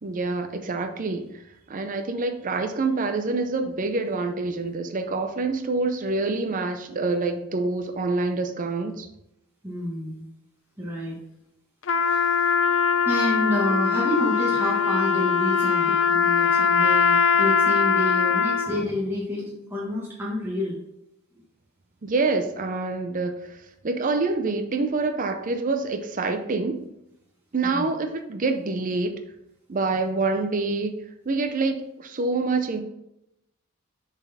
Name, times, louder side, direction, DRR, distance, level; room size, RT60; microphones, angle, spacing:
voice 1, 0.0-1.2 1.7-9.1 22.0-26.9 27.5-29.2 29.7-30.9 31.3-32.8, right 3 dB, 40° right, 6 dB, 0.5 m, -26 dB
voice 2, 9.6-10.2 10.8-11.2 12.1-12.7 13.0-20.8 27.6-27.9, left 1 dB, 10° right, -6 dB, 1.3 m, -29 dB
Trumpet, 11.8-18.8, left 6 dB, 65° left, 0.5 m, -21 dB
7.1 x 4.1 x 4.1 m, 0.84 s
head